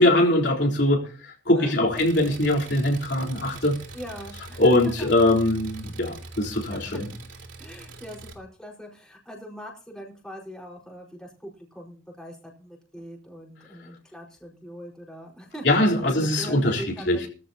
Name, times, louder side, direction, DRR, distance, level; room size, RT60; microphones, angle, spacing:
voice 1, 0.0-3.8 4.6-7.1 15.6-17.3, left 1 dB, 60° left, 0 dB, 3.9 m, -22 dB
Engine, 1.9-8.3, right 2 dB, 90° right, 2.8 m, -42 dB
voice 2, 3.9-5.1 6.7-6.8 7.6-17.2, equal, 5° left, -2 dB, 4.7 m, -41 dB
20.5 x 14.5 x 2.9 m, 0.38 s
head